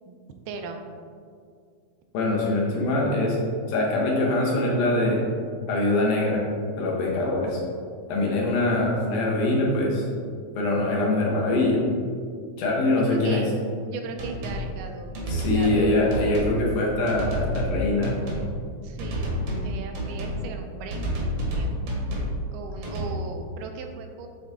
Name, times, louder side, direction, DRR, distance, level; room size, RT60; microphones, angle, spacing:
voice 1, 0.5-0.8 13.0-13.5 13.9-15.1 15.5-15.9 18.8-19.3 19.6-21.1 21.5-21.7 22.5-24.3, right 4 dB, 85° right, 5 dB, 2.2 m, -37 dB
voice 2, 2.1-3.4 3.7-5.2 5.7-6.4 6.8-7.6 8.1-10.0 10.6-11.8 12.6-13.5 15.3-18.1, left 2 dB, 75° left, -3 dB, 2.6 m, -23 dB
sound 1, 14.2-14.6 15.1-15.8 16.1-16.6 17.1-17.7 18.0-18.5 19.0-19.7 19.9-20.4 20.9-22.3 22.8-23.1, equal, 60° right, 1.5 m, -29 dB
8.0 x 3.9 x 3.6 m, 2.2 s
omnidirectional pair, 3.8 m